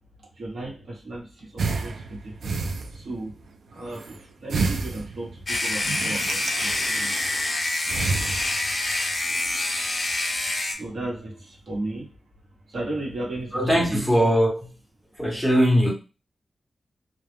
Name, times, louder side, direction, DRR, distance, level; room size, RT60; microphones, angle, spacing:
voice 1, 0.3-2.5 2.9-3.4 3.7-7.1 10.5-12.1 12.7-13.6 13.9-14.0, right 2 dB, 65° right, -2 dB, 1.0 m, -35 dB
sound 1, 1.6-3.3 3.7-4.2 4.5-7.5 7.9-8.9 9.3-9.6, right 4 dB, 85° right, 0.3 m, -31 dB
sound 2, 5.5-10.7, left 2 dB, 40° left, 0.7 m, -26 dB
voice 2, 13.5-14.7 15.2-15.9, equal, ahead, -2 dB, 0.7 m, -20 dB
2.3 x 2.1 x 3.2 m, 0.31 s
wide cardioid pair, 140°, 0 cm